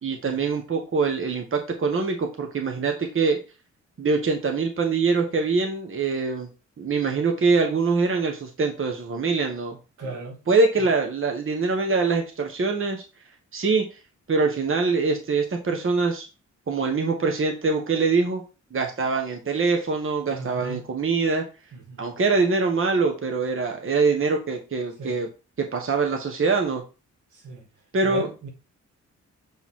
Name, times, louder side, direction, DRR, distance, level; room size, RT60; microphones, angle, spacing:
voice 1, 0.0-3.4 4.0-6.5 6.8-9.8 10.0-10.1 10.5-13.0 13.5-14.0 14.3-16.3 16.7-18.4 18.7-21.4 22.0-25.3 25.7-26.8 27.9-28.3, right 4 dB, 45° right, 1.4 m, -24 dB
voice 2, 10.0-10.4 20.3-20.8 21.9-22.0 25.0-25.2 27.4-27.6 28.1-28.5, right 3 dB, 80° right, 2.4 m, -35 dB
7.8 x 5.1 x 3.7 m
cardioid pair, 90°, 30 cm